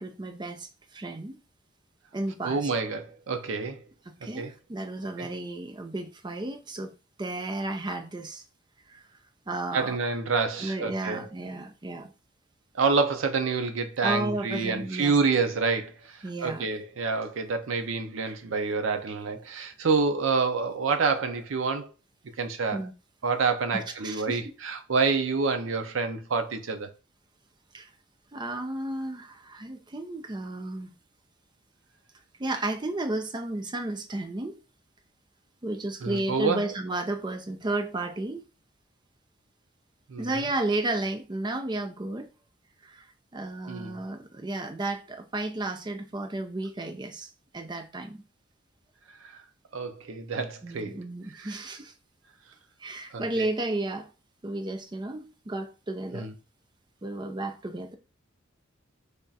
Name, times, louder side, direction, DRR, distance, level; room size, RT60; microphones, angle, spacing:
voice 1, 0.0-1.4 2.1-2.7 4.1-6.9 7.2-8.4 8.9-9.0 9.5-10.0 10.6-12.1 14.0-15.2 16.2-16.7 22.7-22.9 23.7-24.4 27.7-27.9 28.3-30.9 32.4-34.6 35.6-38.5 40.2-42.3 42.8-43.1 43.3-47.3 47.5-48.2 50.6-51.9 52.8-54.1 54.4-56.3 57.0-58.0, right 2 dB, 20° right, 0.5 m, -33 dB
voice 2, 2.4-3.8 4.4-4.5 5.2-5.3 9.7-11.3 12.8-21.9 22.4-22.8 23.2-26.9 36.0-36.6 40.1-40.3 43.7-44.0 49.2-49.3 49.7-51.0 51.4-51.6 53.1-53.5 56.1-56.3, right 4 dB, 75° right, 0.5 m, -28 dB
3.3 x 2.4 x 4.0 m
head